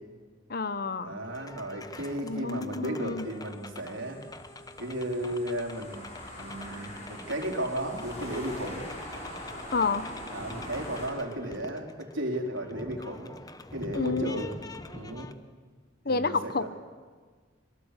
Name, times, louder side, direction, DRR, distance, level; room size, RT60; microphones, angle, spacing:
voice 1, 0.5-1.2 2.2-3.3 9.7-10.1 13.9-14.5 16.0-16.8, left 4 dB, 50° left, 13 dB, 1.1 m, -29 dB
voice 2, 1.0-4.2 4.8-6.1 6.4-8.9 10.3-13.3 13.7-14.5 14.9-15.3 16.1-16.5, right 1 dB, 80° right, 2 dB, 4.0 m, -34 dB
sound 1, 1.2-15.3, left 2 dB, 20° left, 1.0 m, -46 dB
sound 2, 3.3-11.1, equal, 35° left, 7.2 m, -42 dB
25.5 x 23.5 x 8.4 m, 1.5 s
head